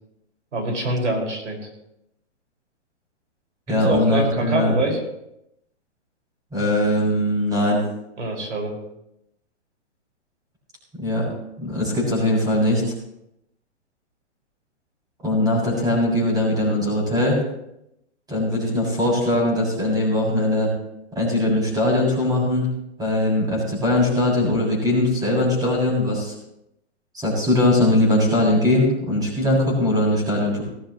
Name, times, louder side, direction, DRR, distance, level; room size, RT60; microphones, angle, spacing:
voice 1, 0.5-1.6 3.7-5.0 8.2-8.7, right 2 dB, 85° right, 1 dB, 6.0 m, -25 dB
voice 2, 3.7-4.7 6.5-7.8 11.0-11.3 11.6-12.8 15.2-17.4 18.3-20.7 21.2-22.7 23.0-26.3 27.1-30.6, left 1 dB, 10° right, -3 dB, 7.0 m, -20 dB
18.5 x 14.0 x 3.2 m, 0.82 s
hypercardioid pair, 145°, 35 cm